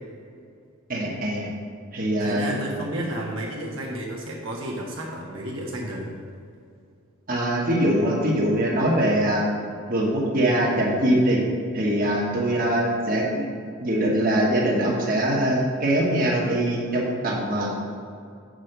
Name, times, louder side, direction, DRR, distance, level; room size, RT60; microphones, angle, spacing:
voice 1, 0.9-1.5 1.9-2.4 7.3-9.4 9.9-11.4 11.7-13.4 13.8-17.7, right 1 dB, 40° right, -4 dB, 1.4 m, -22 dB
voice 2, 2.2-6.2 12.4-12.6, right 1 dB, 65° right, -4 dB, 1.2 m, -32 dB
6.4 x 4.9 x 6.7 m, 2.3 s
head